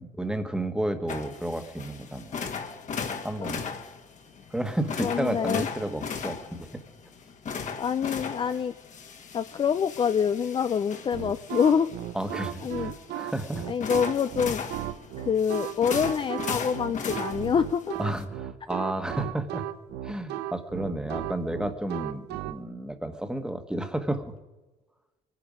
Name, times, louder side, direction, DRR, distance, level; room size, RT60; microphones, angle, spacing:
voice 1, 0.0-2.4 3.2-3.7 4.5-6.8 12.1-13.7 18.0-19.6 20.0-24.3, right 1 dB, 5° right, 8 dB, 1.3 m, -32 dB
sound 1, 1.1-18.2, left 5 dB, 45° left, 1.7 m, -38 dB
voice 2, 5.0-5.7 7.8-8.7 9.3-11.9 12.6-12.9 13.7-14.6 15.2-17.9, left 7 dB, 30° left, 11 dB, 0.4 m, -26 dB
sound 2, 11.1-22.6, right 13 dB, 80° right, 0.9 m, -35 dB
23.5 x 10.5 x 5.0 m, 1.1 s
cardioid pair, 110°, 17 cm